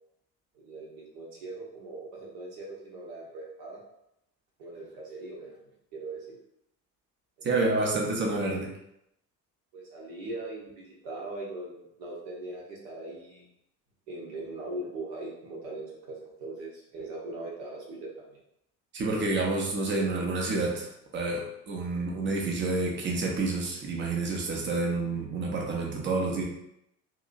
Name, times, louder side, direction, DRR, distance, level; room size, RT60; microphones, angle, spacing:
voice 1, 0.5-3.8 4.6-5.6 5.9-6.4 7.4-8.1 9.7-13.5 14.1-18.4, right 2 dB, 55° right, -4 dB, 1.0 m, -40 dB
voice 2, 7.4-8.7 18.9-26.4, right 3 dB, 25° right, -1 dB, 0.7 m, -29 dB
2.8 x 2.6 x 2.5 m, 0.79 s
figure-of-eight pair, 60°, 48 cm